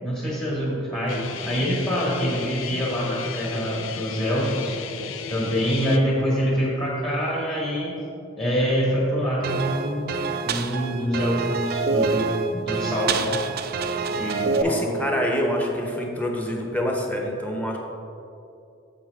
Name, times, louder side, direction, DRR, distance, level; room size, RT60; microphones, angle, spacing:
voice 1, 0.0-4.8 5.3-8.0 8.4-10.1 10.4-13.4 14.1-14.9, equal, 25° left, -5 dB, 1.4 m, -25 dB
Guitar, 1.1-6.0, left 6 dB, 90° left, 0.5 m, -34 dB
sound 1, 9.4-14.6, right 4 dB, 50° right, 0.4 m, -26 dB
voice 2, 14.6-17.8, equal, 10° left, 0 dB, 0.8 m, -26 dB
8.5 x 7.0 x 3.5 m, 2.7 s
head